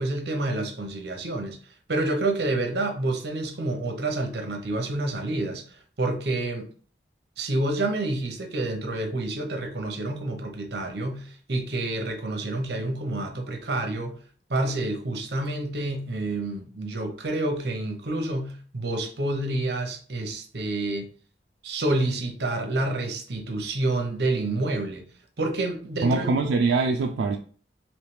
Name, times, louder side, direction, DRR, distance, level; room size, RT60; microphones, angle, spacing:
voice 1, 0.0-1.6 1.9-6.7 7.4-14.1 14.5-21.1 21.6-25.0 25.4-26.3, right 2 dB, 65° right, 0.8 m, -28 dB
voice 2, 26.0-27.4, right 3 dB, 85° right, 0.3 m, -23 dB
3.2 x 3.0 x 3.2 m
head